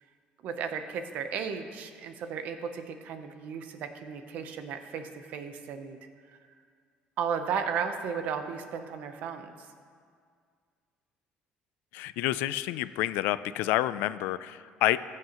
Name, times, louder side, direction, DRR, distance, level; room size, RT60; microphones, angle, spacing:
voice 1, 0.4-6.0 6.3-6.4 7.2-9.7, right 6 dB, 55° right, 8 dB, 0.8 m, -34 dB
voice 2, 11.9-15.0, left 15 dB, 85° left, 15 dB, 0.3 m, -28 dB
20.5 x 7.6 x 3.0 m, 2.1 s
cardioid pair, 170°, 3 cm